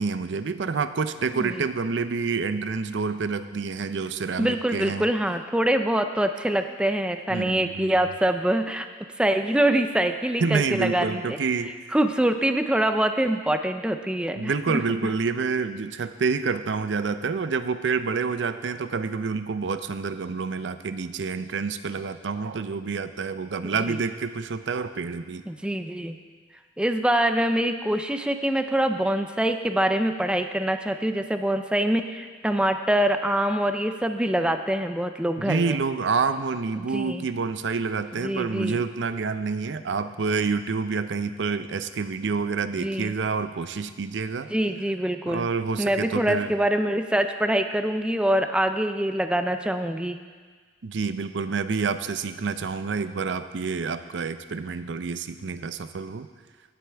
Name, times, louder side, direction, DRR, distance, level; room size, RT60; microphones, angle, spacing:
voice 1, 0.0-5.1 7.3-8.0 10.4-11.7 14.4-25.4 35.4-44.5 45.3-46.5 50.8-56.3, right 4 dB, 80° right, 11 dB, 0.5 m, -28 dB
voice 2, 4.4-8.9 9.2-11.4 11.9-14.8 23.6-24.0 25.5-26.2 26.8-35.8 36.8-37.3 38.1-38.8 42.8-43.1 44.5-45.5 45.8-50.2, right 1 dB, 5° right, 7 dB, 0.4 m, -24 dB
17.5 x 7.9 x 3.4 m, 1.5 s
head